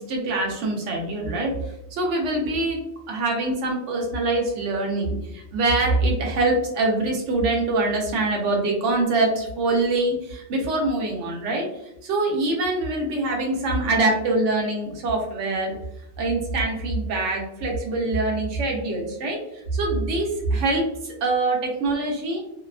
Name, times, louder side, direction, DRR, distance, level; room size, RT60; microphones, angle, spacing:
voice 1, 0.0-1.5 1.9-2.8 3.1-11.7 12.0-15.7 16.2-19.4 19.7-22.4, right 2 dB, 85° right, 0 dB, 1.0 m, -24 dB
2.7 x 2.2 x 2.3 m, 0.83 s
omnidirectional pair, 1.2 m